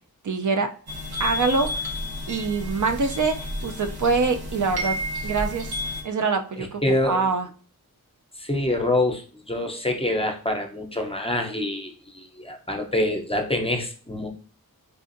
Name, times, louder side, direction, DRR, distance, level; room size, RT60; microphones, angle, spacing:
voice 1, 0.2-0.7 1.2-1.8 2.3-5.7 6.0-7.5, right 4 dB, 55° right, 5 dB, 0.4 m, -25 dB
sound 1, 0.9-6.0, left 1 dB, 90° right, 1.0 m, -31 dB
voice 2, 6.6-7.3 8.4-14.3, left 1 dB, 15° left, 3 dB, 0.6 m, -26 dB
4.7 x 2.5 x 2.5 m, 0.41 s
wide cardioid pair, 55°, 36 cm